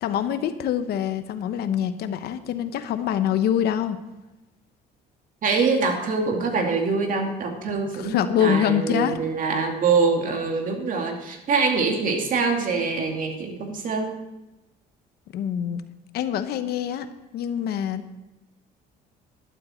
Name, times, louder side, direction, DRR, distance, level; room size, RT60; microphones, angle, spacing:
voice 1, 0.0-4.0 7.9-9.2 15.3-15.8 16.1-17.1 17.3-18.2, left 9 dB, 70° left, 10 dB, 1.0 m, -25 dB
voice 2, 5.4-14.2, right 4 dB, 55° right, 3 dB, 2.4 m, -24 dB
12.0 x 11.5 x 4.4 m, 0.98 s
cardioid pair, 110°, 17 cm